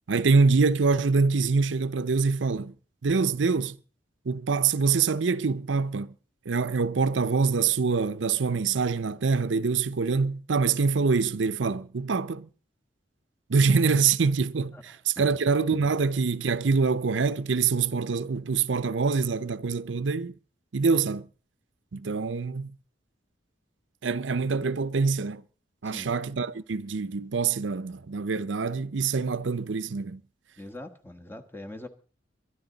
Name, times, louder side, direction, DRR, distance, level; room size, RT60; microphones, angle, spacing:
voice 1, 0.1-2.7 3.0-3.8 4.3-6.1 6.5-12.5 13.5-14.8 15.1-20.3 20.7-21.3 21.9-22.7 24.0-25.4 25.8-30.2, right 4 dB, 85° right, 0.6 m, -25 dB
voice 2, 14.7-15.3 25.8-26.1 30.6-31.9, left 1 dB, 10° left, 1.3 m, -43 dB
23.0 x 11.0 x 4.0 m
head